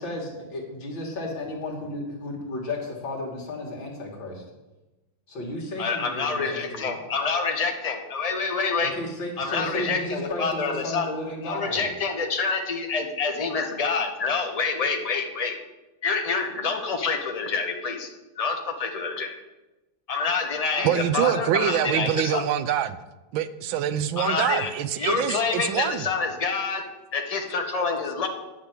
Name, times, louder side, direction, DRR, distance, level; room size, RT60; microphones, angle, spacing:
voice 1, 0.0-4.4 5.3-7.0 8.8-11.9 20.7-20.9, left 1 dB, 75° left, -1 dB, 3.0 m, -33 dB
voice 2, 5.8-8.9 9.4-11.1 11.4-15.5 16.0-18.1 18.4-19.3 20.1-22.4 24.2-24.7 25.0-26.8 27.1-28.3, left 4 dB, 25° left, 4 dB, 1.0 m, -27 dB
voice 3, 20.8-23.0 23.3-26.1, right 10 dB, 85° right, 13 dB, 1.5 m, -25 dB
10.5 x 6.0 x 8.2 m, 1.1 s
omnidirectional pair, 2.1 m